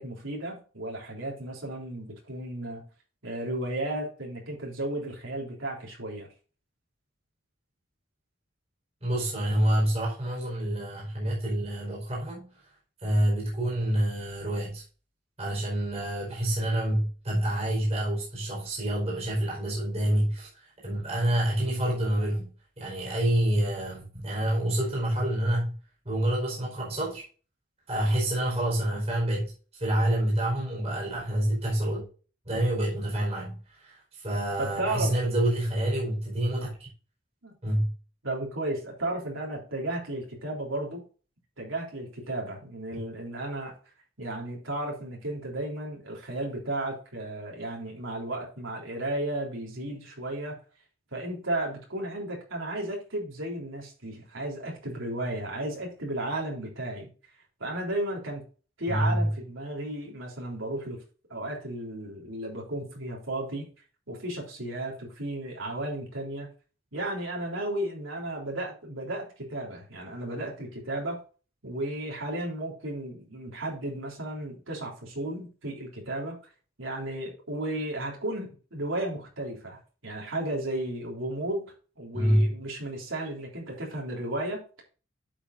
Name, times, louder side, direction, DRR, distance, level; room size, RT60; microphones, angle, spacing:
voice 1, 0.0-2.9 3.2-6.3 34.6-35.1 37.4-37.5 38.2-41.0 41.6-43.7 44.2-50.6 51.1-57.1 57.6-58.4 58.8-61.0 61.3-63.7 64.1-66.5 66.9-71.2 71.6-76.3 76.8-81.7 82.0-84.6, right 1 dB, 85° right, 3.6 m, -34 dB
voice 2, 9.0-12.5 13.0-14.8 15.4-22.5 22.8-25.7 26.0-27.2 27.9-32.0 32.4-36.9 37.6-37.9 58.9-59.3 82.1-82.5, right 1 dB, 30° right, 4.8 m, -27 dB
11.5 x 7.5 x 2.6 m
head